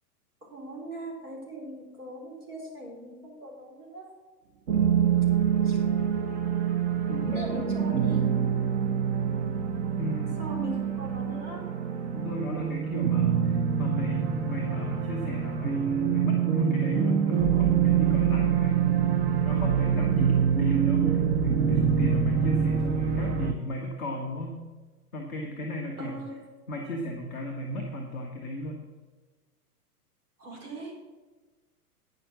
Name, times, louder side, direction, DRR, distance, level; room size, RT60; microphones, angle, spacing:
voice 1, 0.4-4.1 5.6-5.8 7.3-8.2 10.3-11.6 26.0-26.4 30.4-30.9, right 1 dB, 70° right, -1 dB, 4.3 m, -40 dB
sound 1, 4.7-23.5, right 8 dB, 45° right, 1.2 m, -25 dB
voice 2, 7.1-7.5 10.0-10.3 12.1-18.8 19.4-24.6 25.1-26.2 26.7-28.8, left 1 dB, ahead, -15 dB, 0.3 m, -35 dB
9.6 x 6.8 x 7.3 m, 1.3 s
figure-of-eight pair, 110°, 46 cm